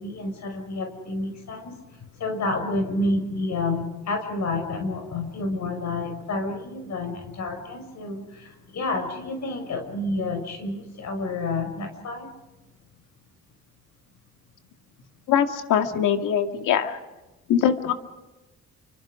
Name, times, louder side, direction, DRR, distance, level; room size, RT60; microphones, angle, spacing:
voice 1, 0.0-1.8 2.2-12.3, left 2 dB, 65° left, 4 dB, 6.2 m, -29 dB
voice 2, 15.3-17.0 17.5-17.9, left 8 dB, 85° left, 6 dB, 2.4 m, -22 dB
29.0 x 25.0 x 5.1 m, 1.1 s
cardioid pair, 90°, 30 cm